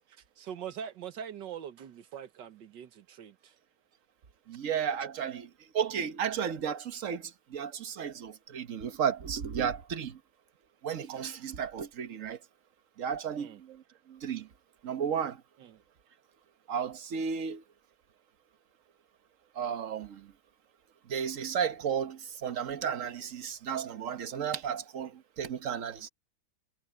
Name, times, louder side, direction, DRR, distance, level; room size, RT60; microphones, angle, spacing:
voice 1, 0.0-3.6 13.4-13.6 15.6-15.8, right 8 dB, 65° right, 1.9 m, -43 dB
voice 2, 4.5-5.5 5.7-7.2 7.5-10.2 10.8-12.4 13.0-13.8 14.1-14.5 14.8-15.4 16.7-17.6 19.6-20.2 21.1-25.1 25.4-26.1, right 7 dB, 50° right, 1.2 m, -33 dB
omnidirectional pair, 2.2 m